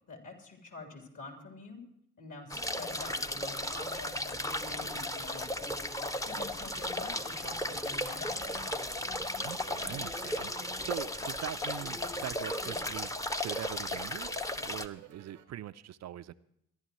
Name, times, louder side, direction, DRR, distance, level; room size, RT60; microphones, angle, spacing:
voice 1, 0.1-1.8 2.2-5.7 6.2-8.7, left 3 dB, 55° left, 3 dB, 3.4 m, -47 dB
sound 1, 2.5-14.9, left 1 dB, 10° left, 0.8 m, -35 dB
sound 2, 4.8-15.4, right 11 dB, 85° right, 1.0 m, -56 dB
voice 2, 9.4-13.1 13.4-16.3, right 12 dB, 45° right, 14 dB, 0.5 m, -42 dB
24.5 x 11.0 x 3.1 m, 0.75 s
hypercardioid pair, 45°, 37 cm